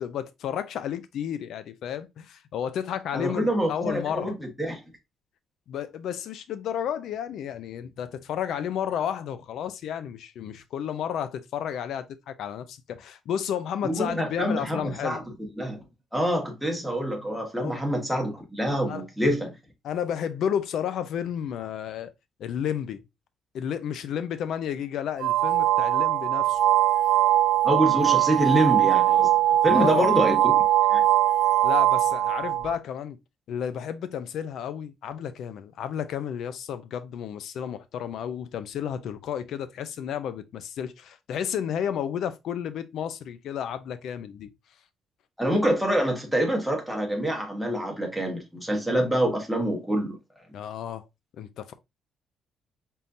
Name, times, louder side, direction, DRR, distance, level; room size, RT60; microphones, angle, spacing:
voice 1, 0.0-4.3 5.7-15.2 17.6-17.8 18.9-19.1 19.8-22.1 22.4-23.1 23.5-26.6 29.7-30.1 31.6-33.2 33.5-44.5 50.5-51.1 51.4-51.7, left 9 dB, 70° left, 0.5 m, -32 dB
voice 2, 3.1-4.8 13.8-15.2 15.6-15.8 16.1-19.5 27.6-29.3 29.6-30.6 30.9-31.0 45.4-50.2, right 1 dB, ahead, 1.1 m, -26 dB
sound 1, 25.2-32.7, right 13 dB, 85° right, 0.4 m, -21 dB
4.2 x 3.7 x 2.6 m
cardioid pair, 150°, 0 cm